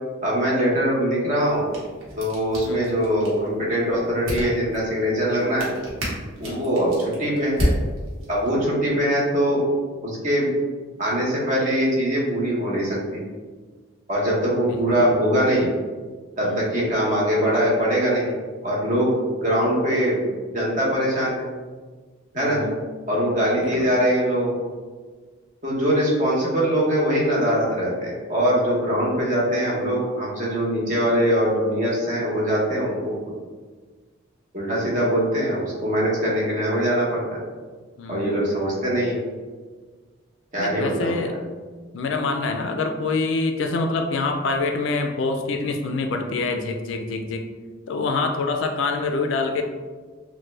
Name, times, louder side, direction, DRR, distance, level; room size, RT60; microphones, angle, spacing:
voice 1, 0.2-1.7 2.2-5.7 6.4-7.7 8.3-9.6 10.0-10.5 11.0-13.2 14.1-15.7 16.4-18.4 18.6-19.1 19.4-21.5 22.3-22.6 23.1-24.5 25.6-33.1 34.5-37.4 38.1-39.2 40.5-41.3, equal, 40° right, -5 dB, 0.8 m, -22 dB
sound 1, 1.4-8.5, equal, 85° right, 1.0 m, -32 dB
voice 2, 14.6-15.1 16.4-16.6 22.4-22.8 23.6-23.9 38.0-38.5 40.6-41.4 41.9-47.4 47.9-49.6, left 3 dB, 65° left, 4 dB, 0.3 m, -26 dB
3.2 x 2.1 x 3.1 m, 1.4 s
head